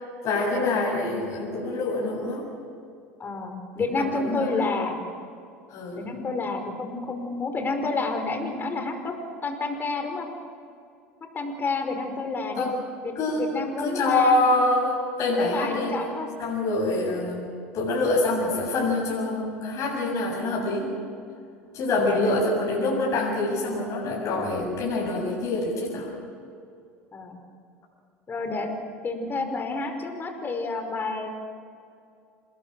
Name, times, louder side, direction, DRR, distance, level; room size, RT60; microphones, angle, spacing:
voice 1, 0.2-2.5 4.0-4.5 5.7-6.0 12.6-12.7 13.2-13.5 13.8-16.0 16.4-17.5 17.7-20.9 21.7-26.1, left 2 dB, 45° left, -3 dB, 7.3 m, -25 dB
voice 2, 3.2-5.0 6.0-9.1 9.4-10.3 11.3-12.7 13.0-14.4 15.4-16.3 21.9-22.5 24.2-24.3 27.1-27.4 28.3-28.7 29.0-31.3, left 3 dB, 30° left, 5 dB, 5.2 m, -30 dB
27.5 x 21.0 x 6.4 m, 2.4 s
hypercardioid pair, 85°, 7 cm